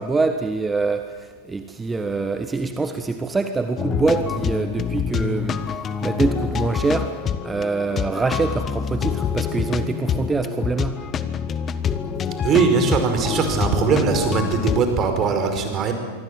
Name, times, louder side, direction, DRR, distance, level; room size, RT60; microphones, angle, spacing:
voice 1, 0.0-10.9, right 3 dB, 10° right, 8 dB, 1.5 m, -25 dB
sound 1, 3.8-14.8, left 7 dB, 25° left, 1.4 m, -26 dB
voice 2, 12.4-15.9, right 5 dB, 30° right, 6 dB, 5.1 m, -20 dB
26.0 x 24.5 x 7.8 m, 1.4 s
figure-of-eight pair, 90°, 0 cm